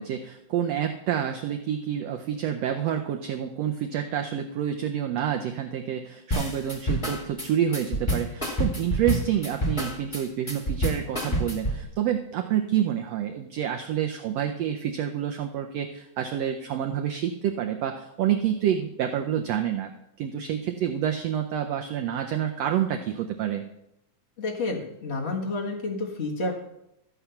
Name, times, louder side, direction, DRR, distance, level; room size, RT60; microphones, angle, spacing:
voice 1, 0.0-19.9 20.2-23.7, right 10 dB, 85° right, 5 dB, 1.4 m, -28 dB
sound 1, 6.3-11.8, equal, 15° left, 1.1 m, -28 dB
voice 2, 24.4-26.5, left 2 dB, 80° left, -1 dB, 0.5 m, -30 dB
13.5 x 8.0 x 5.7 m, 0.84 s
omnidirectional pair, 3.8 m